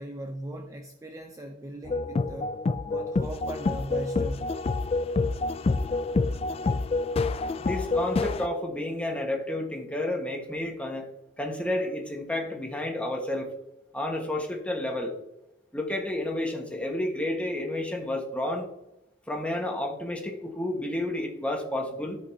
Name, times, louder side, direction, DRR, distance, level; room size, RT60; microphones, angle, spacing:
voice 1, 0.0-2.6 2.8-4.6, right 1 dB, 15° right, 2 dB, 0.6 m, -39 dB
sound 1, 1.9-8.5, left 3 dB, 30° left, 0.3 m, -27 dB
voice 2, 7.6-11.1 11.4-13.5 13.9-15.1 15.7-18.7 19.3-22.2, left 1 dB, 5° left, 0 dB, 1.3 m, -31 dB
13.5 x 5.3 x 2.7 m, 0.89 s
head